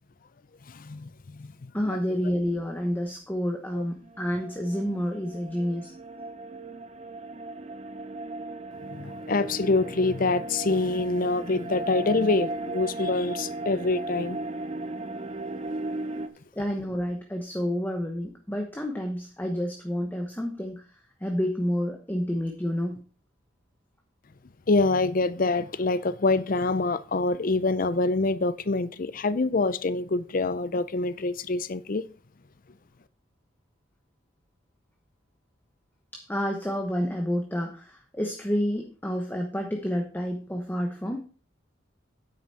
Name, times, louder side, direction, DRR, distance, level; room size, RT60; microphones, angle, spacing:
voice 1, 0.8-1.5 8.9-14.4 24.7-32.0, left 3 dB, 45° left, 0.5 m, -25 dB
voice 2, 1.7-5.9 16.5-23.0 36.1-41.2, equal, 10° left, 1.0 m, -29 dB
sound 1, 4.0-16.3, right 2 dB, 35° right, 0.7 m, -36 dB
9.8 x 7.8 x 4.2 m
head